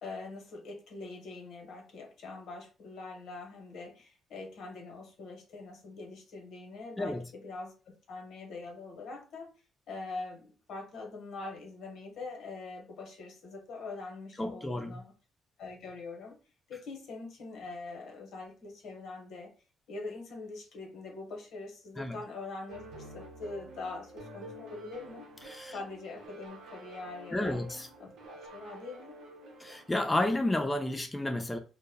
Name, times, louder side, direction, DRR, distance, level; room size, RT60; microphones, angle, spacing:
voice 1, 0.0-7.7 8.1-9.5 9.9-15.1 15.6-16.4 16.7-19.5 19.9-25.3 25.7-27.6 28.0-29.2, left 3 dB, 75° left, 0.7 m, -43 dB
voice 2, 14.4-15.0 22.0-22.2 25.5-25.7 27.3-27.9 29.6-31.6, left 1 dB, 15° left, 0.3 m, -31 dB
sound 1, 22.7-30.2, right 2 dB, 85° right, 0.7 m, -49 dB
2.1 x 2.0 x 3.4 m
cardioid pair, 90°, 0 cm